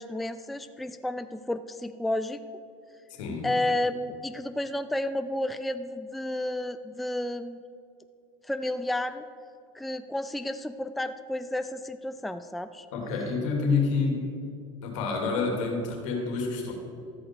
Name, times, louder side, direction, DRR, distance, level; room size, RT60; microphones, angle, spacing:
voice 1, 0.0-2.4 3.4-7.6 8.4-9.2 9.7-12.9, left 1 dB, ahead, 11 dB, 0.4 m, -31 dB
voice 2, 3.2-3.5 12.9-14.2 14.8-16.7, left 4 dB, 75° left, 1 dB, 2.7 m, -28 dB
13.0 x 5.0 x 7.6 m, 2.5 s
hypercardioid pair, 95°, 16 cm